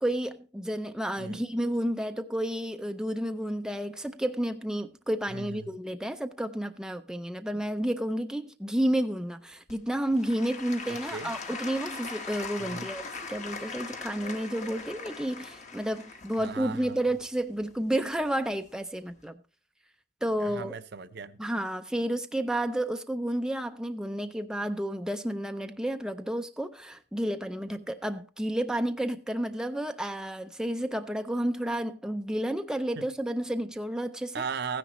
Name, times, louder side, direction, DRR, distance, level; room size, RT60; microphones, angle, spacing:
voice 1, 0.0-19.4 20.2-20.8 21.4-34.4, right 1 dB, 5° right, 0.4 m, -31 dB
voice 2, 5.3-5.7 7.5-7.6 10.9-11.4 12.6-12.9 16.4-17.1 20.4-21.4 33.0-33.1 34.3-34.8, right 5 dB, 55° right, 0.6 m, -37 dB
Applause / Crowd, 9.7-18.6 19.2-19.3, left 4 dB, 40° left, 1.2 m, -41 dB
15.0 x 10.0 x 3.0 m
head